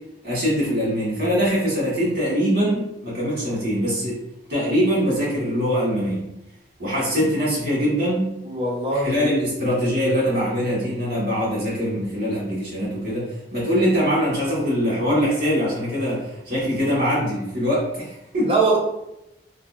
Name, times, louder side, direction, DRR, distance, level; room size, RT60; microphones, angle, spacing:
voice 1, 0.2-4.2 4.5-6.2 6.8-8.3 8.9-18.5, equal, 60° right, -7 dB, 1.4 m, -23 dB
voice 2, 8.4-9.3 18.4-18.8, right 3 dB, 30° right, -4 dB, 0.7 m, -22 dB
2.8 x 2.7 x 2.4 m, 0.87 s
head